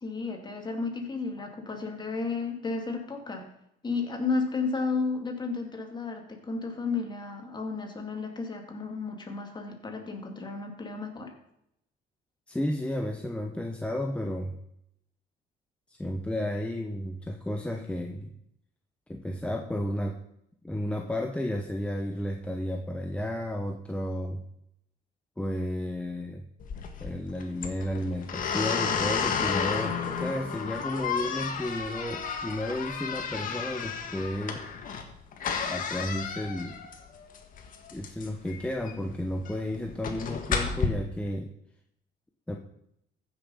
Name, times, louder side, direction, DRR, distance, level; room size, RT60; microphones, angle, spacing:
voice 1, 0.0-3.4 3.8-11.3, left 4 dB, 25° left, 3 dB, 2.4 m, -33 dB
voice 2, 12.5-14.5 15.9-18.3 19.1-20.2 20.6-24.4 25.4-26.4 27.0-34.6 35.6-36.8 37.9-41.5 42.5-42.6, left 1 dB, 5° left, 2 dB, 1.0 m, -32 dB
sound 1, 26.6-40.9, left 6 dB, 55° left, 1.8 m, -32 dB
14.5 x 7.0 x 5.6 m, 0.78 s
cardioid pair, 110°, 17 cm